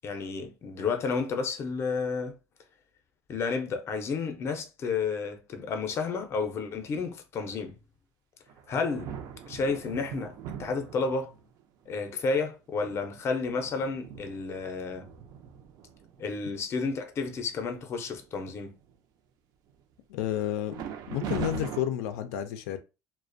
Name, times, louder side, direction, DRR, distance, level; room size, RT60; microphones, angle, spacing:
voice 1, 0.0-2.3 3.3-7.7 8.7-9.1 9.5-11.4 11.9-15.0 16.2-18.7, left 4 dB, 35° left, 0.5 m, -31 dB
sound 1, 8.5-11.5 12.2-12.3 12.7-16.4 16.9-17.0 17.3-17.7 18.1-18.9 20.7-21.8, right 7 dB, 55° right, 0.4 m, -41 dB
voice 2, 20.1-20.8 21.1-22.8, left 12 dB, 90° left, 0.3 m, -31 dB
2.3 x 2.1 x 2.5 m
cardioid pair, 130°, 8 cm